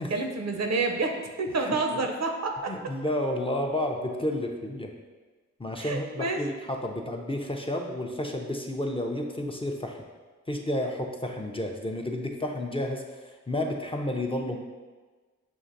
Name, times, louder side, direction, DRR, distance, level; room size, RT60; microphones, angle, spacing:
voice 1, 0.0-2.7 5.8-6.4, right 3 dB, 55° right, 3 dB, 0.6 m, -29 dB
voice 2, 2.7-4.9 5.6-10.0 10.5-13.0 13.5-14.6, left 1 dB, 20° left, 1 dB, 0.5 m, -31 dB
6.2 x 2.5 x 2.6 m, 1.3 s
cardioid pair, 45°, 31 cm